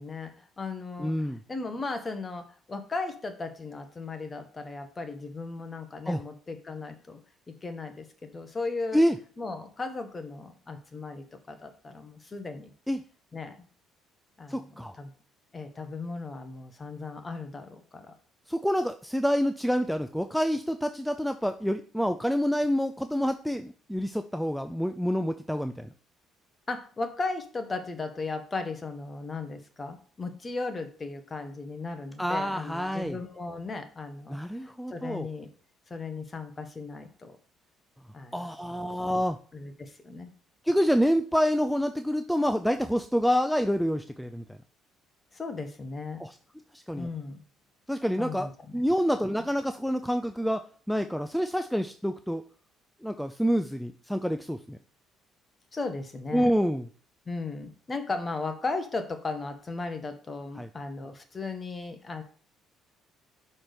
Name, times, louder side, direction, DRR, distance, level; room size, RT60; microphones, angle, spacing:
voice 1, 0.0-7.2 7.5-9.0 9.4-12.7 13.3-13.7 14.4-14.7 14.9-15.1 15.5-18.1 26.7-35.5 35.9-37.4 38.1-38.4 39.5-40.3 45.3-46.2 47.0-47.4 48.2-48.8 49.2-49.3 55.7-56.5 57.3-62.2, left 3 dB, 25° left, 7 dB, 1.2 m, -36 dB
voice 2, 1.0-1.4 6.1-6.2 8.9-9.2 12.9-13.0 14.5-14.9 18.5-25.9 32.2-33.2 34.3-35.3 38.3-39.4 40.7-44.6 46.2-46.4 46.7-47.1 47.9-48.5 48.7-50.6 50.9-52.4 53.0-54.8 56.3-56.9 60.6-60.7, equal, ahead, 8 dB, 0.4 m, -27 dB
5.9 x 4.4 x 5.1 m, 0.43 s
cardioid pair, 105°, 0 cm